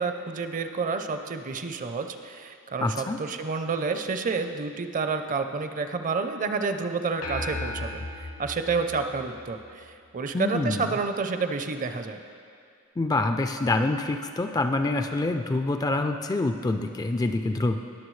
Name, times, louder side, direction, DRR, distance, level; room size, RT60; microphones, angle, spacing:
voice 1, 0.0-12.2, right 4 dB, 40° right, 7 dB, 0.5 m, -29 dB
voice 2, 2.8-3.2 10.3-10.9 13.0-17.8, left 2 dB, 20° left, 7 dB, 0.3 m, -26 dB
sound 1, 7.2-9.9, left 2 dB, 85° left, 1.1 m, -36 dB
20.0 x 6.7 x 3.2 m, 2.3 s
head